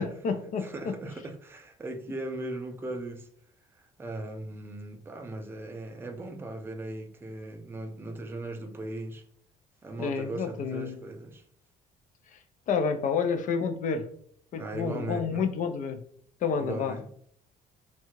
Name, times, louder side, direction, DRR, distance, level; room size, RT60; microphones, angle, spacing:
voice 1, 0.0-1.0 10.0-11.0 12.3-12.4 12.7-14.0 14.5-16.0 16.4-17.0, left 5 dB, 50° left, 0.4 m, -29 dB
voice 2, 0.6-3.3 3.8-9.2 9.8-11.4 14.6-15.5 16.6-17.1, right 2 dB, 15° right, 0.4 m, -38 dB
2.7 x 2.3 x 2.9 m
cardioid pair, 110°, 17 cm